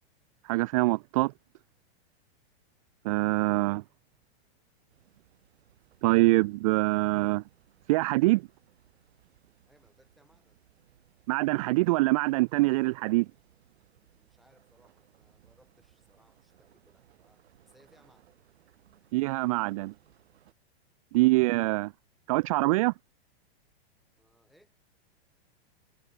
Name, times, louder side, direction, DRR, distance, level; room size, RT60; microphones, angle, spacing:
voice 1, 0.4-1.3 3.0-3.8 6.0-7.4 7.9-8.4 11.3-13.3 19.1-19.9 21.1-21.9 22.3-22.9, right 22 dB, 35° right, 0.4 m, -24 dB
sound 1, 4.9-20.5, right 11 dB, 75° right, 5.8 m, -64 dB
voice 2, 9.7-10.6 14.0-18.3 24.2-24.8, equal, ahead, 7.9 m, -65 dB
supercardioid pair, 150°, 32 cm